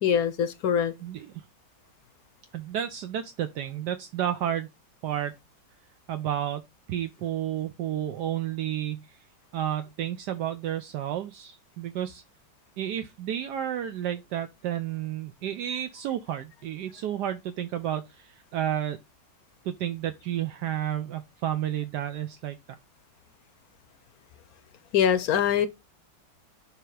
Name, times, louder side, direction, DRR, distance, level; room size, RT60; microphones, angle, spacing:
voice 1, 0.0-0.9 24.9-25.7, left 8 dB, 65° left, 1.0 m, -23 dB
voice 2, 1.0-1.3 2.5-4.7 5.0-5.3 6.1-6.6 6.9-9.2 9.5-12.2 12.8-19.0 19.6-22.6, right 11 dB, 75° right, 1.2 m, -31 dB
6.8 x 2.9 x 4.7 m
omnidirectional pair, 1.9 m